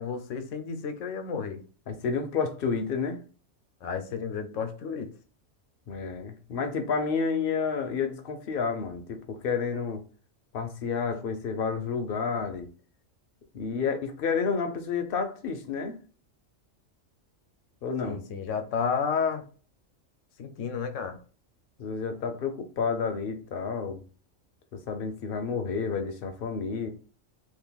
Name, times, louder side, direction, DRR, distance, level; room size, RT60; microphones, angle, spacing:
voice 1, 0.0-1.6 3.8-5.1 18.0-19.4 20.4-21.2, left 6 dB, 90° left, 1.0 m, -31 dB
voice 2, 1.9-3.2 5.9-10.0 10.5-12.7 13.5-16.0 17.8-18.2 21.8-24.0 24.7-26.9, left 5 dB, 55° left, 0.7 m, -30 dB
2.7 x 2.5 x 3.9 m
omnidirectional pair, 1.3 m